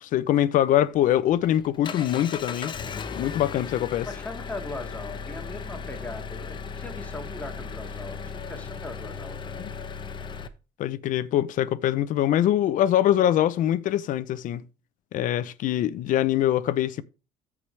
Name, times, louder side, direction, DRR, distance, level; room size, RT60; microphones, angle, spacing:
voice 1, 0.0-2.7 3.1-4.1 9.6-9.7 10.8-14.6 15.1-17.0, left 12 dB, 60° left, 0.8 m, -23 dB
Engine, 1.0-10.5, left 5 dB, 30° left, 1.0 m, -36 dB
voice 2, 4.0-9.7, left 2 dB, 10° left, 2.2 m, -39 dB
14.0 x 4.9 x 3.4 m
cardioid pair, 130°, 16 cm